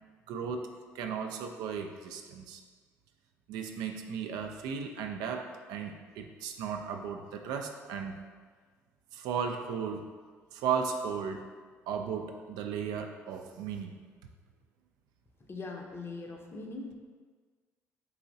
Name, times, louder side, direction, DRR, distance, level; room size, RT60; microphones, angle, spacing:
voice 1, 0.3-0.7 0.9-2.6 3.5-8.1 9.1-10.0 10.5-11.5 11.9-14.0, right 6 dB, 65° right, 5 dB, 0.3 m, -35 dB
voice 2, 15.5-16.9, left 3 dB, 35° left, 1 dB, 0.7 m, -41 dB
4.7 x 2.9 x 2.6 m, 1.5 s
hypercardioid pair, 50°, 7 cm